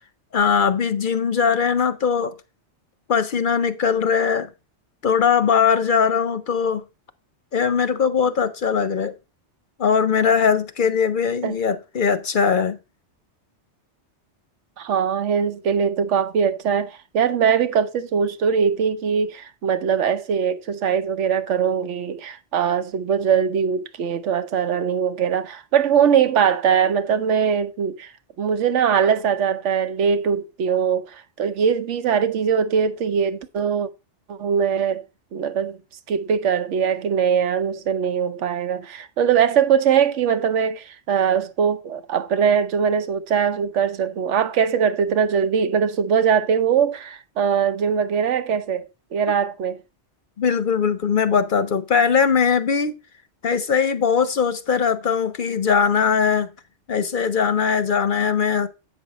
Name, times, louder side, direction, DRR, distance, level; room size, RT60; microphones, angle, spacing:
voice 1, 0.3-2.3 3.1-4.5 5.0-6.8 7.5-9.1 9.8-12.8 50.4-53.0 53.4-56.5 56.9-58.7, left 6 dB, 55° left, 0.7 m, -20 dB
voice 2, 14.8-28.1 28.4-33.9 34.3-35.1 35.3-35.8 36.1-49.8, right 7 dB, 85° right, 1.1 m, -21 dB
8.2 x 6.1 x 4.0 m
omnidirectional pair, 1.2 m